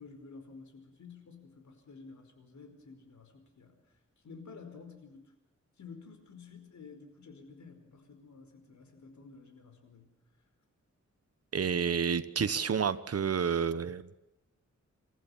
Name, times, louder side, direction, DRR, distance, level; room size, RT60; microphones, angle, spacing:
voice 1, 0.0-3.8 4.2-5.3 5.8-10.1, left 4 dB, 70° left, 6 dB, 4.9 m, -51 dB
voice 2, 11.5-14.1, right 6 dB, 55° right, 15 dB, 1.1 m, -29 dB
27.5 x 15.0 x 7.2 m, 0.92 s
wide cardioid pair, 120°, 30 cm